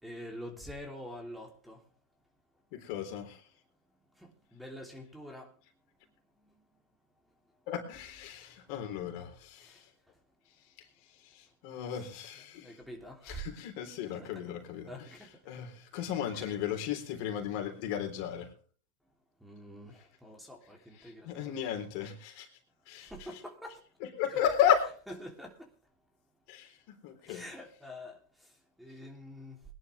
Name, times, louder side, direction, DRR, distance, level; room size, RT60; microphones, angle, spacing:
voice 1, 0.0-1.8 4.1-5.6 6.4-6.7 6.9-7.0 8.3-8.7 9.6-10.2 11.9-12.1 12.5-13.5 14.1-14.4 14.9-15.4 16.3-16.6 19.4-21.6 23.0-23.8 25.1-25.7 27.2-29.6, equal, 5° right, 3.1 m, -47 dB
voice 2, 2.7-3.4 7.7-9.8 11.2-12.8 13.3-14.9 15.5-18.5 21.0-22.5 22.9-23.1 24.2-25.0 26.5-27.4, left 9 dB, 55° left, 3.7 m, -34 dB
21.5 x 11.0 x 3.4 m
hypercardioid pair, 115°, 0 cm